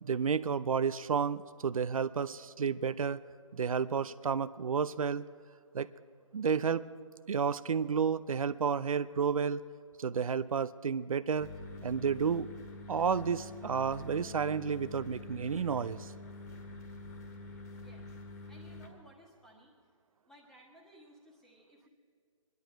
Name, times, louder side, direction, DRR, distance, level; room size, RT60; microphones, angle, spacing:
voice 1, 0.0-3.2 3.5-5.2 5.7-5.9 6.3-6.9 7.3-9.6 10.0-11.5 11.8-12.5 12.9-16.1, right 6 dB, 85° right, 14 dB, 0.5 m, -31 dB
sound 1, 11.4-18.9, left 2 dB, 35° left, 1.6 m, -47 dB
voice 2, 17.8-18.2 18.5-19.7 20.3-21.9, equal, ahead, -2 dB, 1.4 m, -59 dB
22.5 x 11.0 x 4.5 m, 2.1 s
hypercardioid pair, 160°, 17 cm